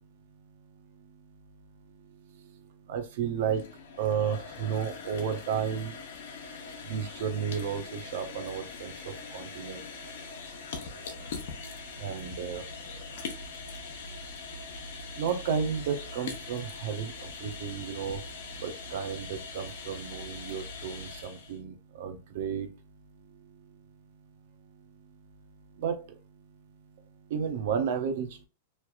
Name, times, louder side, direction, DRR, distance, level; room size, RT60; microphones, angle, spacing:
voice 1, 2.9-3.6 4.0-5.9 6.9-9.8 12.0-12.6 15.2-17.1 17.4-18.2 18.6-22.7 25.8-26.0 27.3-28.5, right 7 dB, 65° right, 7 dB, 0.7 m, -32 dB
sound 1, 3.3-21.6, left 4 dB, 65° left, 0.8 m, -42 dB
3.1 x 2.9 x 2.3 m, 0.32 s
hypercardioid pair, 105°, 0 cm